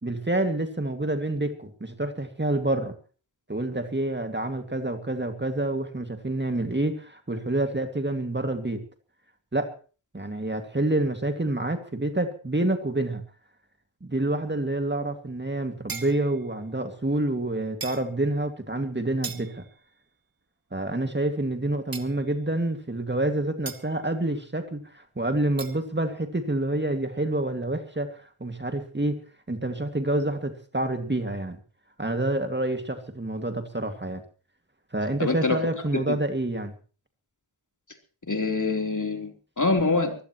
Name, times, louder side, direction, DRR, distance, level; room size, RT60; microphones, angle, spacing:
voice 1, 0.0-2.9 3.5-8.8 9.5-9.7 10.1-13.2 14.0-19.6 20.7-29.2 29.5-31.6 32.0-34.2 34.9-36.7, right 1 dB, 20° right, 6 dB, 2.2 m, -28 dB
sound 1, 15.9-16.5 17.8-18.1 19.2-19.8 21.9-22.4 23.7-24.0 25.6-25.8, right 5 dB, 45° right, 2.0 m, -38 dB
voice 2, 35.2-35.6 36.1-36.2 38.3-40.2, left 3 dB, 40° left, 4 dB, 3.6 m, -25 dB
23.0 x 16.5 x 3.1 m, 0.37 s
cardioid pair, 50°, 48 cm